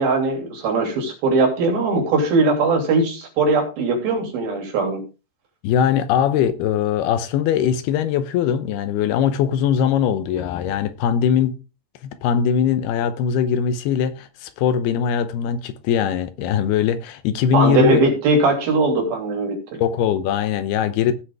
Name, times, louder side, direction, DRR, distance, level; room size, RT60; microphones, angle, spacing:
voice 1, 0.0-5.0 17.5-19.8, right 3 dB, 60° right, 4.6 m, -20 dB
voice 2, 5.6-11.6 12.0-18.0 19.8-21.1, left 8 dB, 75° left, 2.6 m, -21 dB
17.5 x 6.3 x 3.6 m
omnidirectional pair, 5.2 m